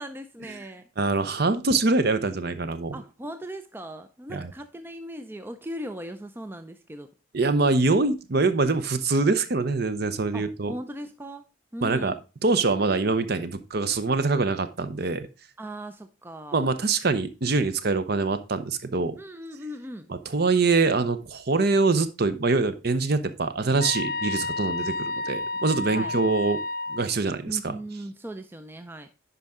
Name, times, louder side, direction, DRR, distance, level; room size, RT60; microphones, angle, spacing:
voice 1, 0.0-0.9 2.9-7.1 10.3-11.5 11.7-12.2 15.6-16.6 19.2-20.1 25.9-26.2 27.4-29.1, right 1 dB, 10° right, 0.4 m, -38 dB
voice 2, 1.0-3.0 4.3-4.5 7.3-10.7 11.8-12.1 12.4-15.3 16.5-19.2 20.3-26.6 26.9-27.8, right 3 dB, 50° right, 0.7 m, -24 dB
sound 1, 23.8-27.1, left 2 dB, 45° left, 0.6 m, -30 dB
10.0 x 5.4 x 3.6 m
head